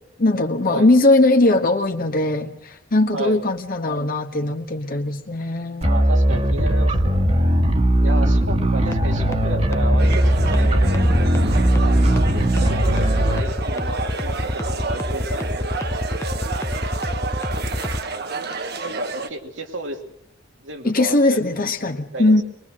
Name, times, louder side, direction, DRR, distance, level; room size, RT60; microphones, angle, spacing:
voice 1, 0.2-5.9 20.8-22.4, left 2 dB, 50° left, 5 dB, 1.3 m, -19 dB
sound 1, 5.8-13.4, right 1 dB, 35° right, 1.8 m, -18 dB
voice 2, 5.8-7.2 8.0-11.1 11.7-12.0 12.5-15.8 18.8-20.0 20.6-21.4 22.1-22.4, right 2 dB, 80° right, 3 dB, 2.7 m, -32 dB
sound 2, 8.8-18.0, left 1 dB, 15° left, 0.7 m, -27 dB
sound 3, 10.0-19.3, right 3 dB, 60° right, 1.4 m, -30 dB
23.0 x 21.0 x 6.4 m, 0.75 s
head